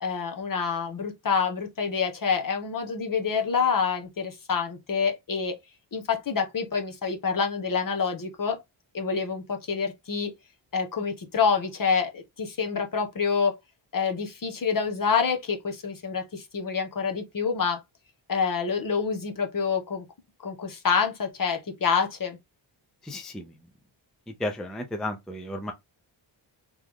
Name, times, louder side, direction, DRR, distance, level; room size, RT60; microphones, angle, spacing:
voice 1, 0.0-5.5 5.9-8.6 8.9-10.3 10.7-13.5 13.9-17.8 18.3-20.0 20.4-22.4, left 5 dB, 45° left, 1.0 m, -27 dB
voice 2, 23.0-23.5 24.4-25.7, left 1 dB, ahead, 0.4 m, -33 dB
3.5 x 3.1 x 3.5 m
wide cardioid pair, 155°, 48 cm